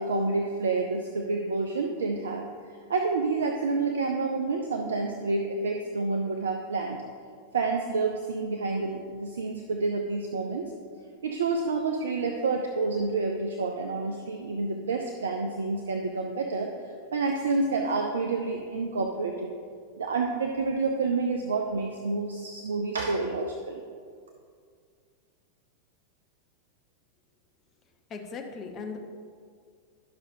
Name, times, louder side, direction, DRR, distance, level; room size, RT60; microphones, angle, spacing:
voice 1, 0.0-2.4 2.9-7.0 7.5-10.7 11.2-16.7 17.1-19.5 20.0-23.8, right 3 dB, 65° right, 3 dB, 0.5 m, -28 dB
voice 2, 28.1-29.0, left 5 dB, 30° left, 3 dB, 0.8 m, -38 dB
11.5 x 6.0 x 2.7 m, 2.1 s
figure-of-eight pair, 90°, 0 cm